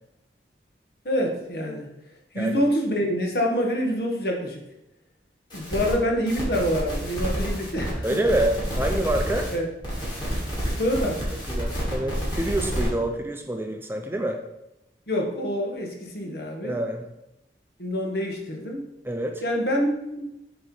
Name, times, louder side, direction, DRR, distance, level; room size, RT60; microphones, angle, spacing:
voice 1, 1.0-1.9 2.3-4.6 5.5-8.2 9.5-9.7 10.8-11.2 15.1-16.8 17.8-18.8 19.4-20.2, equal, 65° left, 1 dB, 1.2 m, -26 dB
sound 1, 5.5-5.9 6.3-9.5 9.8-12.9, equal, 25° left, 2.4 m, -29 dB
voice 2, 8.0-9.5 11.5-14.4 16.6-17.1 19.0-19.4, right 1 dB, 15° right, 4 dB, 0.4 m, -27 dB
7.6 x 3.0 x 5.2 m, 0.90 s
head